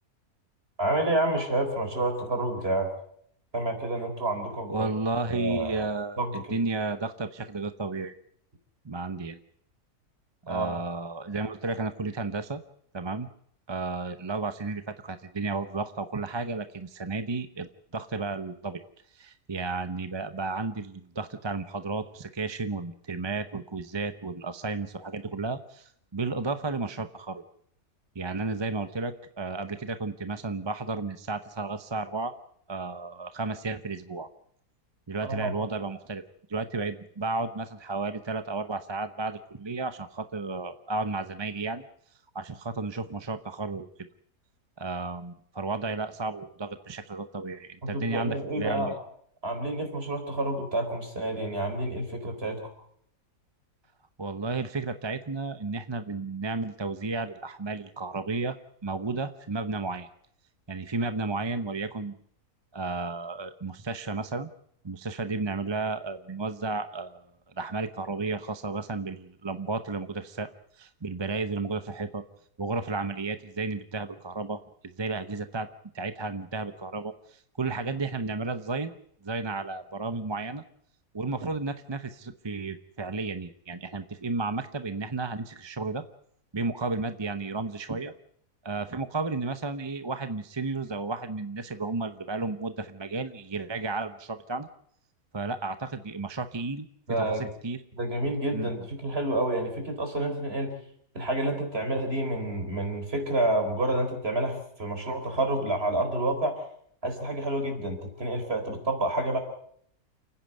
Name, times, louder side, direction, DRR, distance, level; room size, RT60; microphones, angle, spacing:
voice 1, 0.8-2.9 3.5-4.9 5.3-5.8 6.2-6.3 10.5-10.7 35.2-35.5 47.8-48.9 49.4-52.6 97.1-97.5 97.9-100.7 101.1-106.6 107.0-109.4, right 1 dB, 40° right, 4 dB, 4.6 m, -29 dB
voice 2, 4.7-8.1 8.8-9.4 10.4-12.6 12.9-13.3 13.7-18.8 19.1-27.4 28.1-32.3 32.7-34.3 35.1-36.2 36.5-41.8 42.3-43.9 44.8-49.0 54.2-60.1 60.7-62.1 62.7-64.5 64.8-67.2 67.6-70.5 70.7-72.2 72.6-74.6 75.0-75.7 75.9-78.9 79.2-80.6 81.1-86.0 86.5-88.1 88.6-94.7 95.3-96.9 97.2-97.8 98.5-98.7, right 3 dB, 25° right, 10 dB, 0.7 m, -33 dB
29.0 x 10.0 x 9.1 m, 0.67 s
omnidirectional pair, 1.6 m